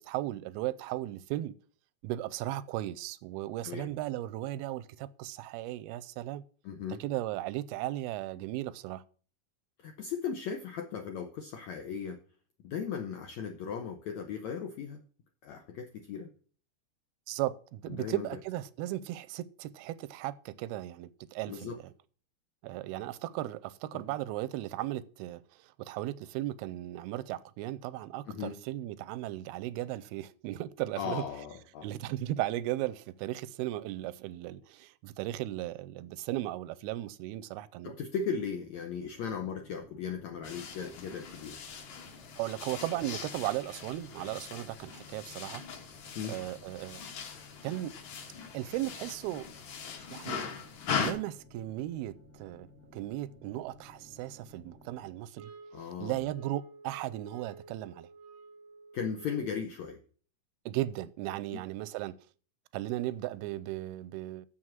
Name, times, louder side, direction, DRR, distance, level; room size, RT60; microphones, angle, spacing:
voice 1, 0.0-1.6 2.0-6.4 7.0-9.0 17.3-21.8 22.6-31.2 31.8-37.9 42.4-45.6 46.3-47.0 47.6-47.9 48.5-49.5 50.1-50.5 51.0-52.7 52.9-55.5 55.8-58.1 60.7-62.1 62.7-64.5, right 15 dB, 90° right, 2.5 m, -36 dB
voice 2, 6.6-7.0 9.8-12.2 12.6-15.0 15.4-16.3 17.9-18.3 21.5-21.8 23.9-24.0 28.3-28.6 31.0-31.9 37.8-41.6 46.1-46.4 55.7-56.2 58.9-60.0 61.5-61.6, left 6 dB, 80° left, 1.6 m, -37 dB
sound 1, 39.1-55.1, left 3 dB, 10° right, 1.5 m, -56 dB
sound 2, 40.4-51.1, left 6 dB, 60° left, 2.4 m, -40 dB
sound 3, 55.4-59.7, right 4 dB, 70° right, 1.5 m, -52 dB
7.5 x 6.3 x 7.3 m
omnidirectional pair, 4.3 m